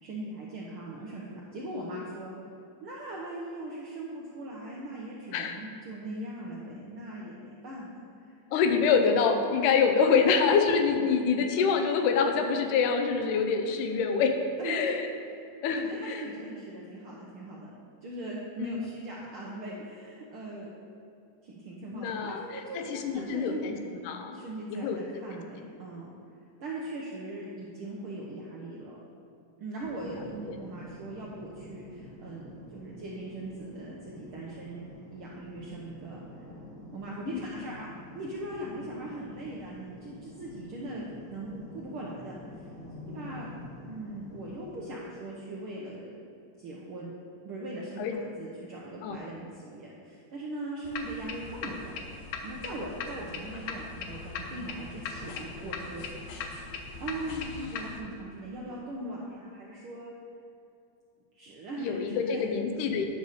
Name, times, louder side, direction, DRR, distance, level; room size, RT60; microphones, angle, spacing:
voice 1, 0.0-2.3 2.8-8.4 10.2-10.3 14.6-14.9 15.8-17.7 18.0-20.7 21.4-23.7 24.3-26.1 26.6-29.0 29.6-36.2 36.9-42.3 43.1-43.5 43.8-46.1 46.6-47.1 47.4-51.9 52.4-56.0 57.0-60.1 61.3-62.4, right 1 dB, 75° right, -4 dB, 1.2 m, -40 dB
voice 2, 8.5-14.4 14.6-15.1 15.6-16.3 18.6-19.0 21.9-23.8 24.1-24.4 24.8-25.0 37.3-37.4 48.0-48.2 49.0-49.2 61.8-63.1, left 5 dB, 90° left, 5 dB, 2.2 m, -26 dB
sound 1, 29.8-44.8, left 1 dB, ahead, 1.2 m, -47 dB
sound 2, 50.8-58.0, left 4 dB, 75° left, 1.8 m, -39 dB
9.6 x 4.0 x 6.5 m, 2.6 s
omnidirectional pair, 3.5 m